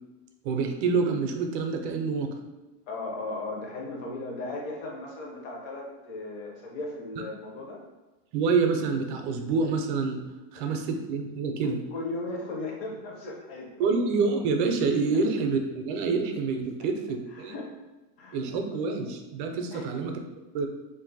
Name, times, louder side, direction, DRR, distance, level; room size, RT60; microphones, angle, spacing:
voice 1, 0.4-2.3 8.3-11.8 13.8-17.5 18.3-20.2 20.5-20.7, right 4 dB, 50° right, 4 dB, 0.5 m, -27 dB
voice 2, 2.9-7.8 10.6-10.7 11.9-13.9 17.3-17.7 18.2-18.4 19.7-19.9, left 2 dB, 55° left, -1 dB, 0.8 m, -36 dB
2.6 x 2.5 x 3.9 m, 1.1 s
supercardioid pair, 165°, 34 cm